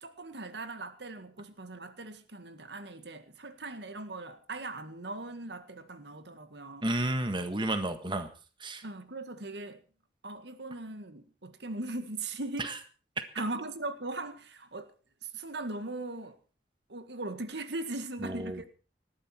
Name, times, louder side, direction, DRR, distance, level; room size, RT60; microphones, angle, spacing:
voice 1, 0.0-6.9 8.8-9.8 10.2-12.7 13.4-14.9 15.2-16.4 16.9-18.7, right 2 dB, 80° right, 1.8 m, -39 dB
voice 2, 6.8-8.3 8.6-8.8 12.6-12.8 18.2-18.7, right 1 dB, 25° right, 1.6 m, -32 dB
19.5 x 14.5 x 4.4 m
head